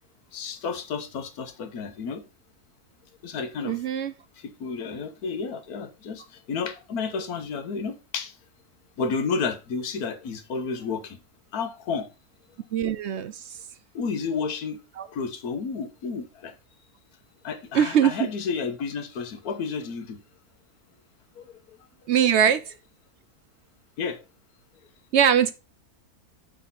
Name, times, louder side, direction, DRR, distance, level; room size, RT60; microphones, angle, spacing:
voice 1, 0.3-2.2 3.2-3.8 4.4-8.3 9.0-11.2 11.5-12.1 13.9-14.8 15.1-16.5 17.4-20.2 21.4-21.5 24.0-24.2, left 5 dB, 75° left, 1.4 m, -31 dB
voice 2, 3.6-4.1 12.7-13.5 15.0-15.1 17.7-18.2 22.1-22.7 25.1-25.5, right 9 dB, 65° right, 0.7 m, -22 dB
6.3 x 5.8 x 4.1 m
omnidirectional pair, 1.6 m